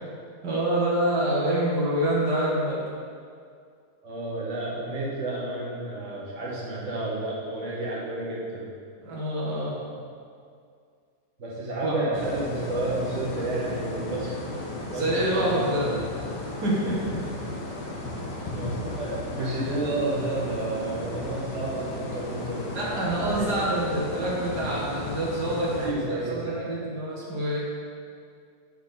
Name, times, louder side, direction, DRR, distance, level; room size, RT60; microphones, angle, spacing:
voice 1, 0.4-2.8 9.0-9.8 11.8-12.0 14.9-15.9 16.6-17.2 22.7-27.6, right 1 dB, 75° right, -6 dB, 2.5 m, -26 dB
voice 2, 4.0-8.7 11.4-14.5 14.9-15.9 18.5-23.5 25.8-26.7, right 2 dB, 45° right, -6 dB, 1.8 m, -31 dB
sound 1, 12.1-25.9, left 2 dB, 90° left, 1.7 m, -35 dB
12.5 x 4.6 x 4.0 m, 2.2 s
omnidirectional pair, 1.8 m